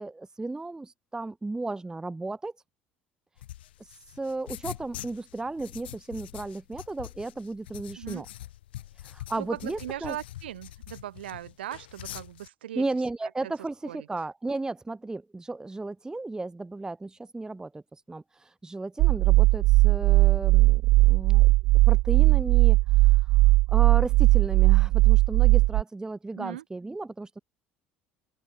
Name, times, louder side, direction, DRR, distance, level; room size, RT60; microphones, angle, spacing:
voice 1, 0.0-2.5 4.2-8.3 9.0-10.2 12.7-17.8 18.1-21.5 21.9-23.2 23.7-27.4, right 2 dB, 10° right, 0.6 m, -34 dB
sound 1, 3.4-12.5, left 14 dB, 70° left, 1.0 m, -44 dB
voice 2, 9.4-12.8 13.4-13.5 13.8-14.1 26.4-26.6, right 12 dB, 75° right, 3.5 m, -39 dB
sound 2, 19.0-25.8, right 20 dB, 55° right, 0.4 m, -19 dB
open air
figure-of-eight pair, 60°, 6 cm